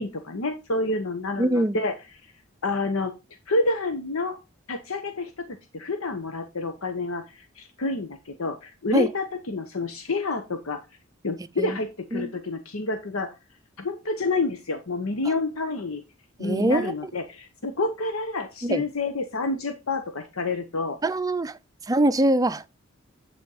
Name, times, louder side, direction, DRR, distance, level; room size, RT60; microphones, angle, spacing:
voice 1, 0.0-1.9 2.6-3.1 3.5-4.4 4.7-10.8 11.2-13.3 13.8-16.0 16.4-21.0, left 3 dB, 85° left, 1.0 m, -28 dB
voice 2, 1.4-1.8 8.9-9.1 11.6-11.8 12.1-12.3 15.2-15.3 16.4-16.9 18.6-18.9 21.0-21.6 21.9-22.6, right 1 dB, 15° right, 0.4 m, -23 dB
9.3 x 4.3 x 4.8 m
head